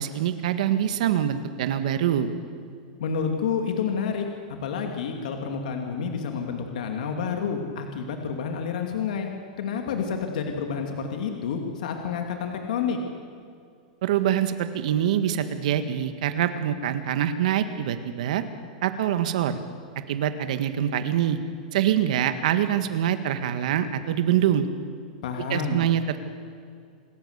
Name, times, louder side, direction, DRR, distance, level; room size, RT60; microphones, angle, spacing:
voice 1, 0.0-2.3 14.0-18.4 18.8-19.6 20.1-21.4 21.7-24.7 25.5-26.2, right 10 dB, 60° right, 10 dB, 1.7 m, -24 dB
voice 2, 3.0-9.3 9.6-13.0 25.2-25.8, left 6 dB, 70° left, 3 dB, 2.7 m, -29 dB
27.5 x 14.0 x 8.3 m, 2.3 s
supercardioid pair, 170°, 4 cm